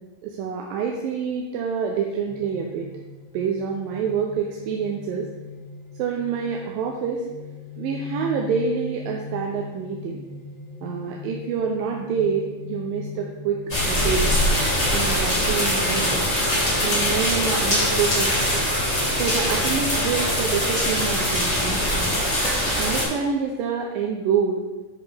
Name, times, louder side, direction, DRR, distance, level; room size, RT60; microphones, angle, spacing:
voice 1, 0.2-2.9 3.3-5.3 6.0-7.2 7.8-10.2 10.8-14.3 14.9-16.2 16.8-18.6 19.1-22.1 22.8-24.6, right 6 dB, 85° right, 0 dB, 2.4 m, -27 dB
sound 1, 2.3-21.5, left 5 dB, 85° left, 3.1 m, -41 dB
sound 2, 13.7-23.0, equal, 20° left, 1.0 m, -22 dB
8.3 x 5.6 x 3.4 m, 1.2 s
omnidirectional pair, 4.0 m